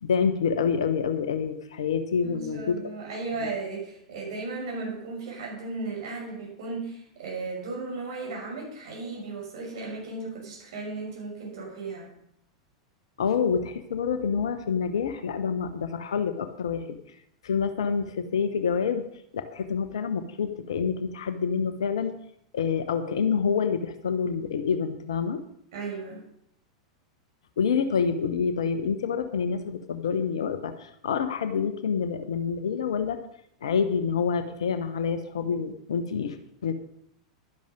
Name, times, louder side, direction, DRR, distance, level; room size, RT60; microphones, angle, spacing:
voice 1, 0.0-2.9 3.4-3.5 13.2-17.0 17.4-19.0 19.3-22.1 22.5-25.4 27.6-33.2 33.6-36.4 36.6-36.7, left 6 dB, 65° left, 10 dB, 1.1 m, -27 dB
voice 2, 2.2-12.1 25.7-26.2, right 3 dB, 55° right, -3 dB, 5.9 m, -35 dB
12.0 x 10.5 x 5.2 m, 0.73 s
figure-of-eight pair, 90°, 3 cm